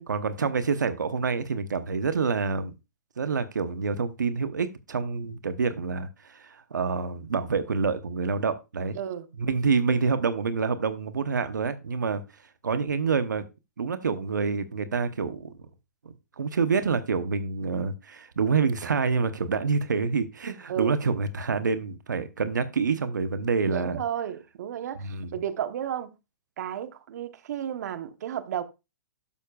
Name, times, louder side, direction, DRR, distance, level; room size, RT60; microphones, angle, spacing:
voice 1, 0.0-2.7 3.2-8.9 9.4-13.4 13.8-15.5 16.4-24.0 25.0-25.3, right 5 dB, 85° right, 0.9 m, -27 dB
voice 2, 8.9-9.3 20.7-21.0 23.7-26.1 26.6-28.6, right 10 dB, 65° right, 1.0 m, -33 dB
12.0 x 6.6 x 2.4 m
hypercardioid pair, 125°, 10 cm